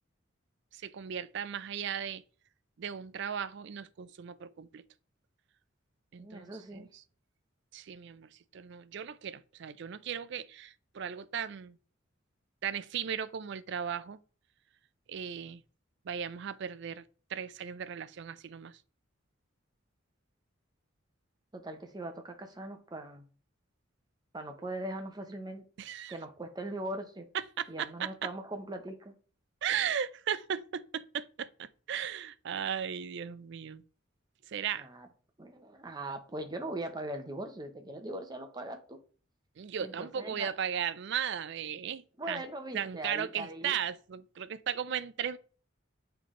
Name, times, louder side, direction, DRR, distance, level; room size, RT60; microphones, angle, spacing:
voice 1, 0.7-2.2 2.8-4.8 6.1-7.0 7.7-11.8 12.6-14.2 15.1-15.6 16.0-17.0 17.3-18.8 25.8-26.1 27.3-28.3 29.6-33.8 34.5-34.9 39.6-42.4 42.7-45.4, right 8 dB, 60° right, 0.4 m, -36 dB
voice 2, 6.2-6.9 21.5-23.3 24.3-25.7 26.1-27.3 27.7-29.1 34.8-35.1 35.4-39.0 39.8-40.5 42.2-43.8, right 1 dB, 20° right, 0.8 m, -40 dB
7.5 x 3.4 x 3.7 m
head